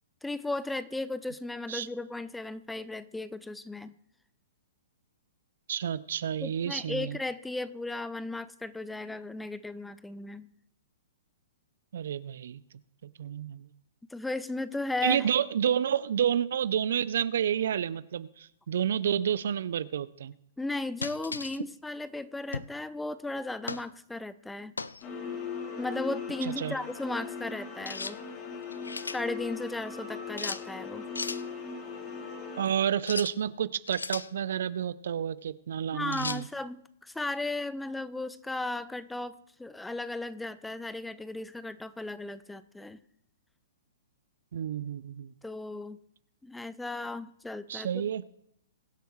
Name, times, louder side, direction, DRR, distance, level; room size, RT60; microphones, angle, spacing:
voice 1, 0.2-3.9 6.4-10.5 14.1-15.3 20.6-24.7 25.8-28.2 29.1-31.0 35.9-43.0 45.4-46.0 46.4-48.1, left 2 dB, 5° left, 16 dB, 0.4 m, -36 dB
voice 2, 5.7-7.2 11.9-12.6 13.2-13.7 15.0-20.3 26.4-26.7 32.6-36.5 44.5-45.3 47.7-48.2, right 9 dB, 65° right, 18 dB, 0.5 m, -30 dB
sound 1, 21.0-21.6 22.5-22.8 23.7-23.9 24.8-25.0 27.9-28.2 28.6-29.2 30.4-30.6 31.2-31.4 33.0-33.4 33.9-34.3 36.1-36.4, left 4 dB, 90° left, 0.4 m, -36 dB
sound 2, 25.0-32.7, left 5 dB, 35° left, 2.0 m, -39 dB
22.5 x 8.1 x 3.1 m, 0.75 s
hypercardioid pair, 120°, 0 cm